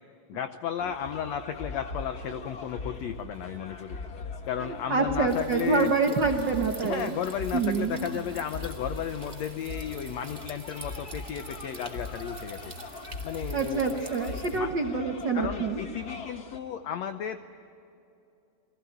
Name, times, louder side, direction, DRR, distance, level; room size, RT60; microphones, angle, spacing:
voice 1, 0.3-4.0 4.5-6.2 6.8-12.7 13.2-14.7 15.3-17.4, left 9 dB, 90° left, 9 dB, 1.5 m, -34 dB
sound 1, 0.8-16.6, left 2 dB, 60° left, 1.0 m, -40 dB
voice 2, 4.9-7.2 7.5-8.1 13.5-15.8, right 4 dB, 80° right, 4 dB, 1.0 m, -26 dB
sound 2, 5.3-14.6, right 2 dB, 20° right, 1.9 m, -48 dB
29.5 x 20.5 x 9.2 m, 2.7 s
omnidirectional pair, 4.3 m